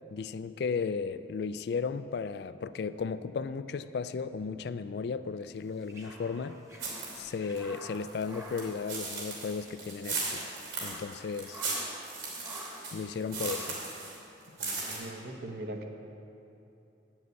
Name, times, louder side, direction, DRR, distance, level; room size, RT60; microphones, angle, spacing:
voice 1, 0.1-6.6 7.1-10.5 10.8-11.6 12.9-13.8, left 5 dB, 55° left, 13 dB, 0.3 m, -35 dB
sound 1, 5.6-9.7 9.9-10.0 10.5-12.1 12.4-13.0 13.3-14.0, right 1 dB, 15° right, 1.1 m, -48 dB
sound 2, 6.8-7.2 7.6-14.2 14.5-15.0, right 3 dB, 85° right, 2.9 m, -37 dB
voice 2, 14.6-15.9, right 1 dB, 55° right, 4 dB, 0.9 m, -41 dB
9.2 x 7.5 x 8.1 m, 2.9 s
head